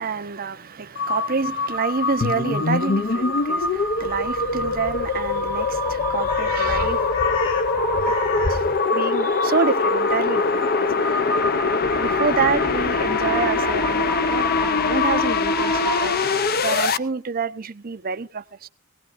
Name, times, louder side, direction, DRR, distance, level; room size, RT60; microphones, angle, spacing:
voice 1, 0.0-7.2 8.5-11.4 12.0-16.1 16.6-18.7, right 5 dB, 45° right, 0.7 m, -27 dB
Crow, 1.0-16.5, left 3 dB, 65° left, 2.4 m, -28 dB
sound 1, 2.2-17.0, left 4 dB, 50° left, 0.6 m, -23 dB
18.5 x 18.5 x 2.5 m
head